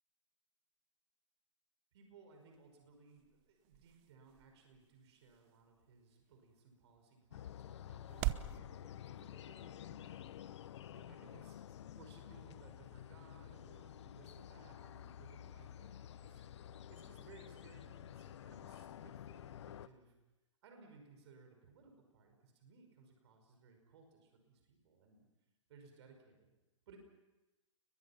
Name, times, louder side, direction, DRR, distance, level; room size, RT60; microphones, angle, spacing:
voice 1, 1.9-10.4 10.9-16.4 16.9-20.1 20.6-25.2 25.7-26.5 26.9-27.0, right 4 dB, 55° right, 4 dB, 5.5 m, -62 dB
sound 1, 2.3-8.6, right 17 dB, 35° right, 1.0 m, -46 dB
sound 2, 7.3-19.9, left 10 dB, 60° left, 1.0 m, -51 dB
29.5 x 22.5 x 5.9 m, 1.0 s
hypercardioid pair, 125°, 16 cm